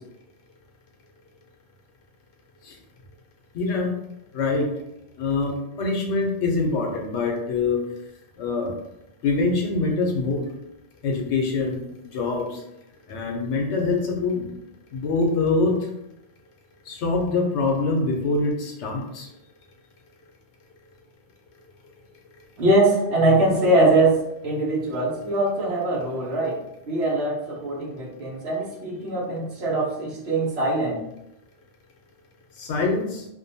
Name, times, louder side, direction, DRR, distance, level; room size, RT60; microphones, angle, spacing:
voice 1, 3.5-3.9 4.3-4.7 5.2-7.8 8.4-8.7 9.2-10.4 11.0-11.8 12.1-12.6 13.1-14.5 14.9-15.8 16.9-19.3 32.6-33.2, left 3 dB, 85° left, 2 dB, 0.9 m, -24 dB
voice 2, 22.6-26.6 26.9-31.0, right 2 dB, 70° right, -5 dB, 1.0 m, -22 dB
2.6 x 2.2 x 2.6 m, 0.83 s
omnidirectional pair, 1.1 m